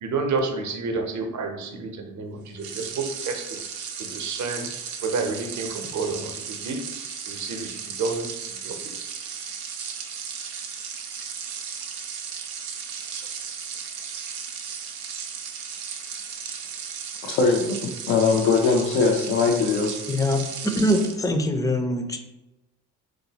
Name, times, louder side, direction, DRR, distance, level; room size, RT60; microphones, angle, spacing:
voice 1, 0.0-3.6 4.1-4.7 5.0-6.3 6.6-6.8 7.3-7.7 8.0-8.3 8.7-8.8, right 4 dB, 50° right, 4 dB, 0.8 m, -29 dB
sound 1, 2.6-21.2, right 7 dB, 80° right, 0.6 m, -35 dB
voice 2, 17.2-20.0, left 4 dB, 80° left, -1 dB, 0.6 m, -21 dB
voice 3, 20.1-22.2, left 1 dB, 10° left, 5 dB, 0.5 m, -23 dB
3.8 x 2.6 x 2.8 m, 0.99 s
supercardioid pair, 65°, 37 cm